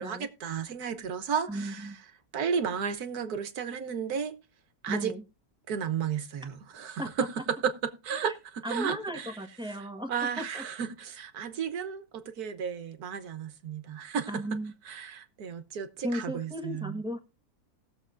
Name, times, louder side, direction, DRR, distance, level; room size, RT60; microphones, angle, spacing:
voice 1, 0.0-1.9 2.3-4.3 4.8-5.1 5.7-9.4 9.7-9.8 10.1-14.4 14.8-17.0, right 7 dB, 80° right, 1.6 m, -33 dB
voice 2, 1.5-2.0 4.9-5.2 7.0-7.1 8.2-8.3 8.6-10.1 10.4-10.6 14.3-14.7 16.0-17.2, right 1 dB, 5° right, 1.3 m, -35 dB
19.0 x 7.2 x 2.6 m
omnidirectional pair, 1.6 m